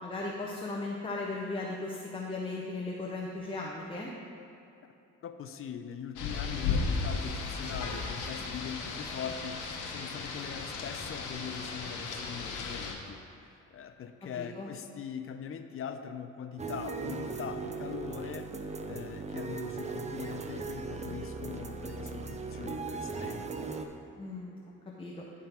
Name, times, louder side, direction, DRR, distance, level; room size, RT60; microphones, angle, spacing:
voice 1, 0.0-4.1 14.4-14.7 24.2-24.6 25.0-25.2, left 2 dB, 15° left, -3 dB, 0.7 m, -37 dB
voice 2, 5.2-18.5 18.9-23.5, left 7 dB, 45° left, 8 dB, 0.5 m, -42 dB
Rain, 6.2-12.9, left 4 dB, 85° left, 1.0 m, -35 dB
sound 1, 16.6-23.9, right 4 dB, 25° right, 0.5 m, -38 dB
10.5 x 3.7 x 4.3 m, 2.8 s
cardioid pair, 90°, 30 cm